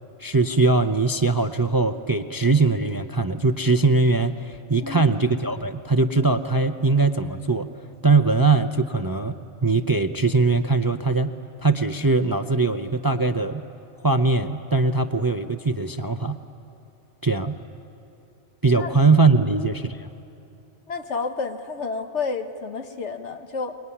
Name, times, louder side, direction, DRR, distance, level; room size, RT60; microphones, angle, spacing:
voice 1, 0.2-7.7 8.0-11.3 11.6-13.6 14.0-16.4 17.2-17.6 18.6-20.1, right 3 dB, 25° right, 8 dB, 0.5 m, -21 dB
voice 2, 4.8-5.1 18.7-18.9 19.4-19.5 20.9-23.8, left 4 dB, 75° left, 7 dB, 1.6 m, -30 dB
24.5 x 22.0 x 9.9 m, 2.8 s
omnidirectional pair, 1.2 m